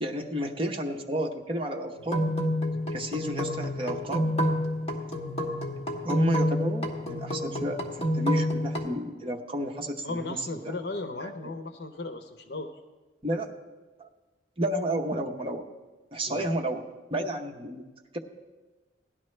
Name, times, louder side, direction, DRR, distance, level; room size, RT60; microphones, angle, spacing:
voice 1, 0.0-2.3 2.9-4.3 5.1-5.2 6.0-7.8 8.1-10.4 10.6-10.7 11.2-11.5 13.2-13.5 14.0-14.1 14.6-15.7 16.1-16.8 17.1-17.8 18.1-18.2, right 1 dB, 30° right, 2 dB, 0.9 m, -31 dB
sound 1, 2.0-8.8, equal, 35° left, 1.4 m, -28 dB
voice 2, 10.0-12.7 16.3-16.6, left 2 dB, 70° left, 7 dB, 0.7 m, -36 dB
17.5 x 11.0 x 3.3 m, 1.2 s
head